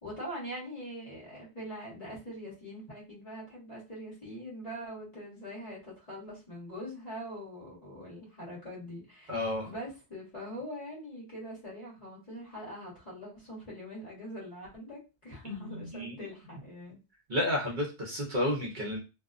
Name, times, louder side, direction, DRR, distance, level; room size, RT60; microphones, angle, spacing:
voice 1, 0.0-9.4 9.6-17.0, equal, 35° left, -7 dB, 1.3 m, -43 dB
voice 2, 9.3-9.7 15.4-16.2 17.3-19.0, left 1 dB, 50° right, -2 dB, 0.8 m, -31 dB
2.6 x 2.1 x 2.4 m, 0.29 s
omnidirectional pair, 1.1 m